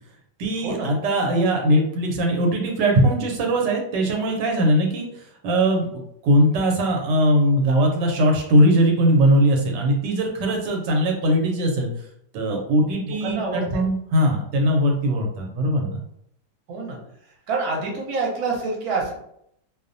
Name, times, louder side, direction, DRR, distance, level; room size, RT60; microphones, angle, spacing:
voice 1, 0.4-11.9 12.3-16.0, equal, 85° right, 2 dB, 1.2 m, -20 dB
voice 2, 13.0-13.8 16.7-17.0 17.5-19.1, right 3 dB, 70° right, -1 dB, 1.1 m, -27 dB
2.8 x 2.0 x 2.5 m, 0.73 s
omnidirectional pair, 1.8 m